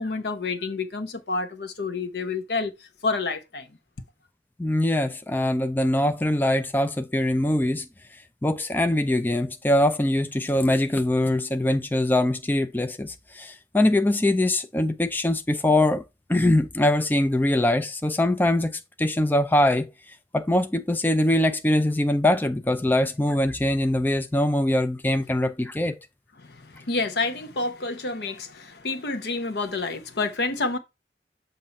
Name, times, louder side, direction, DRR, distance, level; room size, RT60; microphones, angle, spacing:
voice 1, 0.0-3.8 26.4-30.8, left 3 dB, 70° left, 0.9 m, -29 dB
voice 2, 4.6-7.9 8.4-16.0 16.3-19.9 20.3-26.0, left 1 dB, 10° left, 0.4 m, -23 dB
7.1 x 2.6 x 5.2 m
head